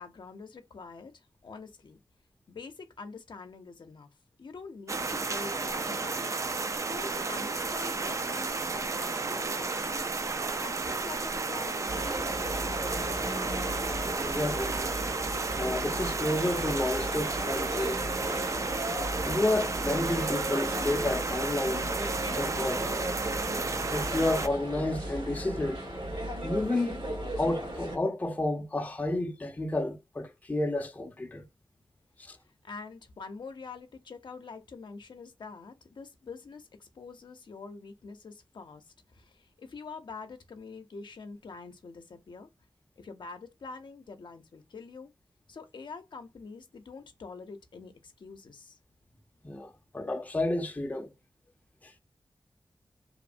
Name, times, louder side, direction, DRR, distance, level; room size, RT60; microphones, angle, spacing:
voice 1, 0.0-2.0 2.5-4.1 4.4-10.1 10.6-13.0 32.6-42.5 43.0-45.1 45.5-48.8, left 4 dB, 65° left, 0.6 m, -45 dB
sound 1, 4.9-24.5, right 4 dB, 35° right, 0.3 m, -33 dB
sound 2, 11.9-28.0, right 1 dB, 70° right, 1.3 m, -35 dB
voice 2, 14.2-15.0 15.6-18.1 19.2-21.9 22.3-23.0 23.9-25.8 26.4-27.0 27.4-31.5 32.3-32.4 49.4-51.1 51.8-52.0, left 2 dB, 20° left, 0.5 m, -31 dB
3.0 x 2.0 x 2.5 m
wide cardioid pair, 95°, 8 cm